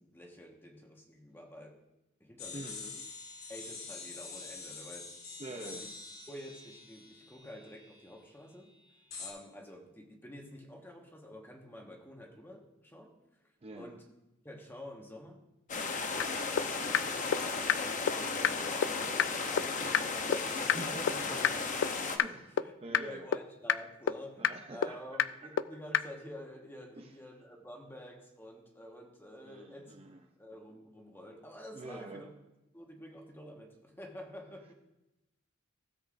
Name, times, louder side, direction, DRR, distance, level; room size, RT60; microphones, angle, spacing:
voice 1, 0.0-1.8 2.2-2.8 3.5-5.9 6.3-8.7 9.2-13.2 13.8-14.1 14.4-15.4 16.3-17.1 17.4-29.9 30.3-32.3 32.7-34.7, equal, 10° left, 1 dB, 1.3 m, -49 dB
sound 1, 2.4-8.1 9.1-9.3, left 4 dB, 90° left, 2.5 m, -46 dB
voice 2, 2.5-3.0 5.4-5.9 13.6-14.0 20.3-21.4 22.2-23.3 24.4-25.6 27.0-27.1 29.4-30.2 31.7-32.3, right 2 dB, 30° right, 4 dB, 0.5 m, -46 dB
sound 2, 15.7-22.2, left 4 dB, 40° left, 0.7 m, -35 dB
sound 3, 16.2-16.3 16.6-16.7 16.9-17.0 17.3-17.4 17.7-17.8 18.1-18.2 18.4-18.5 18.8-18.9 19.2-19.3 19.6-19.7 19.9-20.0 20.3-20.4 20.7-20.8 21.1-21.2 21.4-21.5 21.8-21.9 22.2-22.3 22.6-22.7 22.9-23.0 23.3-23.4 23.7-23.8 24.1-24.2 24.4-24.5 24.8-24.9 25.2-25.3 25.6-25.7 25.9-26.0, left 8 dB, 65° left, 0.3 m, -26 dB
16.0 x 7.8 x 2.5 m, 0.95 s
head